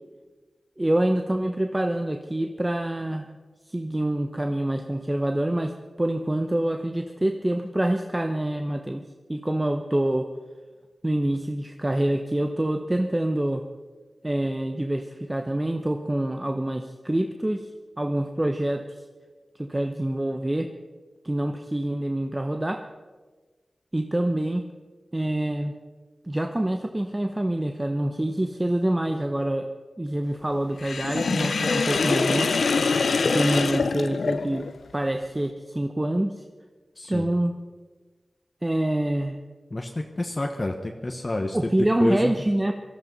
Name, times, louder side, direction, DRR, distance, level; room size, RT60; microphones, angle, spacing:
voice 1, 0.8-3.3 3.7-9.0 9.3-10.3 11.0-13.6 14.2-17.7 18.0-18.8 19.6-20.7 21.2-22.9 23.9-24.6 25.1-25.7 26.2-29.7 30.0-32.6 33.3-34.7 34.9-36.4 37.1-37.6 38.6-39.4 41.5-42.7, right 1 dB, 20° right, 6 dB, 0.9 m, -26 dB
Sink (filling or washing), 30.8-34.8, left 4 dB, 85° left, 0.6 m, -24 dB
voice 2, 37.0-37.3 39.7-41.7 42.0-42.4, left 2 dB, 40° left, 3 dB, 1.1 m, -29 dB
18.0 x 13.0 x 5.4 m, 1.4 s
cardioid pair, 55°, 0 cm